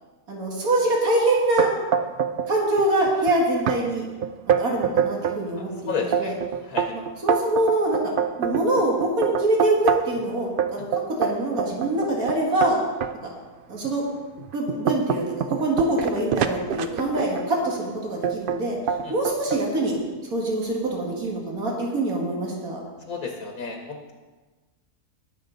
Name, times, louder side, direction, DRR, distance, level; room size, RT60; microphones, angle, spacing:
voice 1, 0.3-1.7 2.5-4.1 4.5-6.4 6.9-8.0 8.4-12.8 13.7-14.0 14.5-18.8 19.1-20.0 20.3-22.8, right 1 dB, 80° right, -2 dB, 2.5 m, -24 dB
sound 1, 1.6-2.5 2.8-3.3 3.7-3.8 4.2-5.4 5.9-10.2 10.6-13.1 13.8-13.9 14.4-17.5 18.2-18.6 18.9-19.6, right 7 dB, 60° right, 0.5 m, -25 dB
voice 2, 5.9-6.3 6.7-6.9 19.0-19.1 23.1-24.1, left 5 dB, 80° left, 2 dB, 1.7 m, -31 dB
20.0 x 6.8 x 4.0 m, 1.2 s
omnidirectional pair, 1.5 m